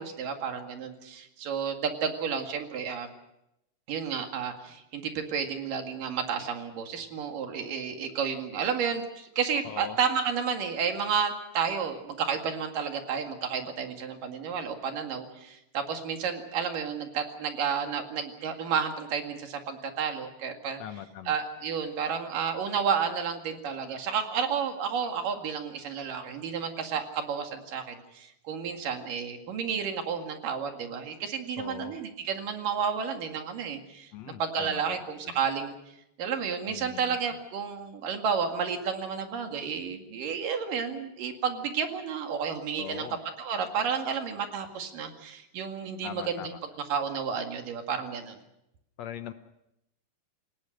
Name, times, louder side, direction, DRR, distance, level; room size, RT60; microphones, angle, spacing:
voice 1, 0.0-3.1 3.9-20.8 21.3-35.8 36.2-43.1 43.4-46.5 46.9-48.4, right 6 dB, 85° right, 5 dB, 3.8 m, -31 dB
voice 2, 9.6-10.0 20.8-21.4 31.6-32.0 34.1-35.4 36.7-37.2 42.8-43.2 46.0-46.6 49.0-49.3, left 10 dB, 65° left, 9 dB, 1.9 m, -41 dB
28.5 x 17.5 x 6.5 m, 0.84 s
omnidirectional pair, 3.7 m